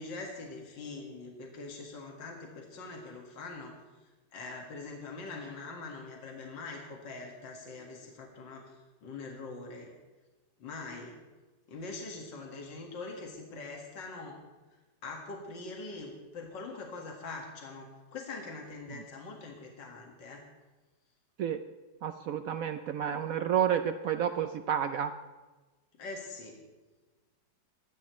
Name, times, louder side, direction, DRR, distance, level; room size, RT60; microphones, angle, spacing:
voice 1, 0.0-3.7 4.3-9.9 10.6-11.2 11.7-14.4 14.7-20.4 26.0-26.6, left 3 dB, 70° left, 0 dB, 2.5 m, -43 dB
voice 2, 22.0-25.1, right 9 dB, 80° right, 9 dB, 0.7 m, -30 dB
21.0 x 15.0 x 3.1 m, 1.2 s
omnidirectional pair, 2.1 m